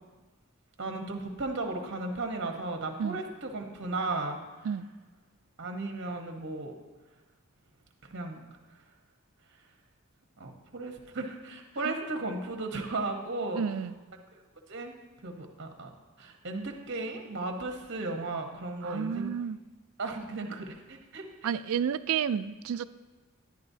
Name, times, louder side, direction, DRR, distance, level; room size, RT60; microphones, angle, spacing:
voice 1, 0.8-4.4 5.6-6.7 8.1-8.4 10.4-13.6 14.7-14.9 15.2-15.9 16.2-19.3 20.0-21.5, right 2 dB, 55° right, 4 dB, 1.1 m, -35 dB
voice 2, 13.5-14.0 18.8-19.6 21.4-22.8, right 7 dB, 75° right, 14 dB, 0.3 m, -31 dB
10.5 x 10.5 x 2.7 m, 1.3 s
head